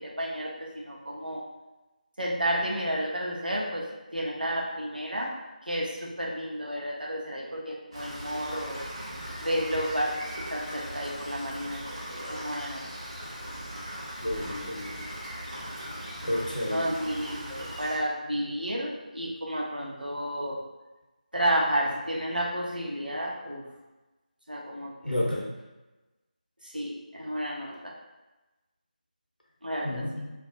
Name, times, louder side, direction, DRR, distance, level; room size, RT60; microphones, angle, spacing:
voice 1, 0.0-1.4 2.2-3.9 4.1-5.3 5.6-8.8 9.4-12.8 16.7-20.6 21.3-23.6 24.5-25.2 26.6-27.9 29.6-30.0, equal, 85° right, -3 dB, 0.7 m, -31 dB
Rain, 7.9-18.0, equal, 35° right, 0.6 m, -39 dB
voice 2, 14.2-15.0 16.2-16.9 25.0-25.4 29.8-30.3, left 1 dB, 85° left, -4 dB, 0.8 m, -31 dB
2.5 x 2.0 x 2.5 m, 1.1 s
figure-of-eight pair, 160°, 5 cm